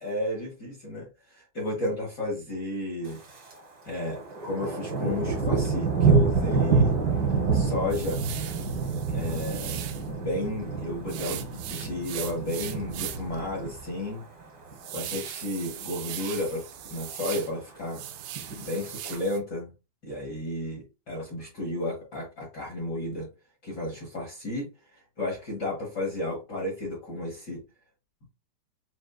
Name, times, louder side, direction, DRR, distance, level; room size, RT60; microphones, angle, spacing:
voice 1, 0.0-3.2 3.8-6.9 7.5-8.2 9.1-14.2 14.9-18.0 18.5-19.7 20.0-23.3 23.6-27.6, left 1 dB, 90° left, -3 dB, 0.9 m, -33 dB
Thunder, 3.0-3.6 3.9-14.2 14.6-15.0 15.4-15.8 16.1-16.2 16.4-16.5 16.9-17.4 18.2-19.1, right 4 dB, 50° right, 1.4 m, -27 dB
sound 1, 7.9-10.1 11.1-13.4 13.8-13.9 14.3-17.5 17.8-19.4, right 12 dB, 85° right, 2.6 m, -39 dB
7.1 x 2.6 x 2.3 m, 0.28 s
omnidirectional pair, 4.3 m